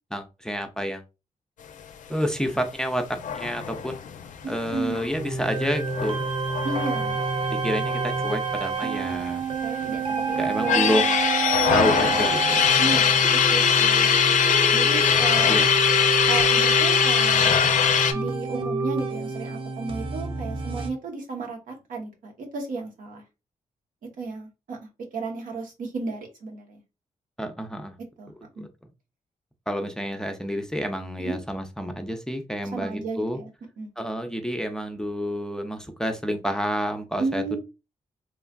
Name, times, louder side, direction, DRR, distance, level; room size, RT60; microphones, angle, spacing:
voice 1, 0.1-1.0 2.1-3.0 3.3-4.0 4.5-6.2 7.6-9.4 10.4-11.0 11.7-13.0 15.0-15.1 15.4-15.7 27.4-27.9 28.6-28.7 29.7-33.4 34.0-37.4, equal, 5° left, 6 dB, 0.5 m, -29 dB
sound 1, 3.2-8.3 8.6-8.7 8.9-9.9 10.3-18.1, left 7 dB, 65° left, 0.4 m, -22 dB
voice 2, 4.4-5.1 6.6-7.2 9.6-11.1 11.8-12.3 12.8-14.2 14.7-15.6 16.2-17.6 18.1-23.2 24.0-26.8 28.2-28.7 31.2-31.4 32.6-33.5 33.8-33.9 37.2-37.6, right 3 dB, 80° right, 1 dB, 0.9 m, -33 dB
sound 2, 5.1-20.9, right 3 dB, 40° right, 0.7 m, -28 dB
3.1 x 2.4 x 2.2 m, 0.27 s
cardioid pair, 65°, 14 cm